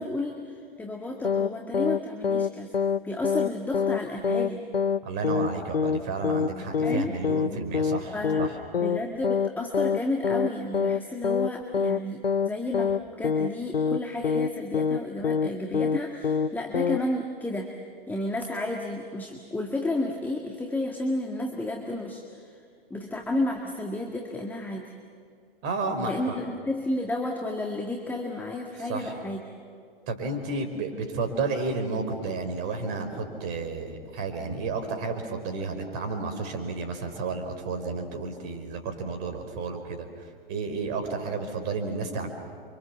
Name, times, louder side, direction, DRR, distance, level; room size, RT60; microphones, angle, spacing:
voice 1, 0.0-2.7 3.0-4.7 6.8-7.1 8.1-17.7 18.1-22.6 22.9-24.9 26.0-29.4 30.9-31.1, left 1 dB, 5° left, 1 dB, 2.0 m, -32 dB
sound 1, 1.2-1.5 1.7-2.5 2.7-3.0 3.2-3.5 3.7-4.0 4.2-4.5 4.7-5.0 5.2-5.5 5.7-6.0 6.2-6.5 6.7-7.0 7.2-7.5 7.7-8.5 8.7-9.0 9.2-9.5 9.7-10.0 10.2-10.5 10.7-11.0 11.2-11.5 11.7-12.0 12.2-12.5 12.7-13.0 13.2-13.5 13.7-14.0 14.2-14.5 14.7-15.0 15.2-15.5 15.7-16.5 16.7-17.0, left 6 dB, 85° left, 0.7 m, -25 dB
voice 2, 5.0-8.5 25.6-26.3 28.8-29.1 30.1-40.1 40.5-42.3, right 3 dB, 35° right, 5 dB, 4.7 m, -32 dB
30.0 x 25.5 x 7.3 m, 2.2 s
figure-of-eight pair, 105°, 29 cm